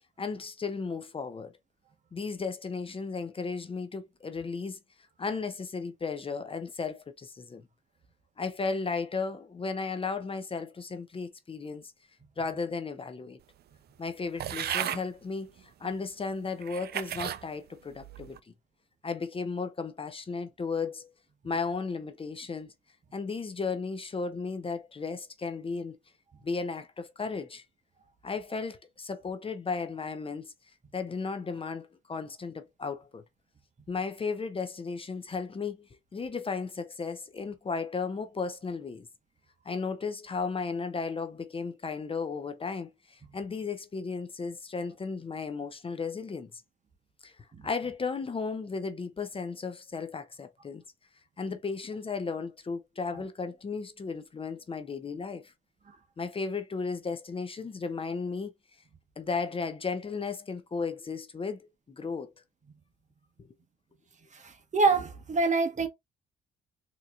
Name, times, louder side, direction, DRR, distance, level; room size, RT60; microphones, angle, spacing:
voice 1, 0.2-1.5 2.1-4.8 5.2-7.6 8.4-11.9 12.4-13.4 14.0-18.5 19.0-21.1 21.4-22.7 23.1-26.0 26.4-27.6 28.2-30.5 30.9-33.2 33.9-35.9 36.1-39.1 39.6-46.6 47.2-50.8 51.4-55.5 56.2-58.5 59.2-62.3, left 4 dB, 30° left, 0.6 m, -35 dB
sound 1, 14.4-15.0 15.8-15.9 16.6-17.4 18.0-18.4, right 11 dB, 55° right, 0.4 m, -34 dB
voice 2, 64.3-65.9, right 3 dB, 35° right, 1.1 m, -26 dB
4.0 x 2.9 x 2.4 m
cardioid pair, 90°, 20 cm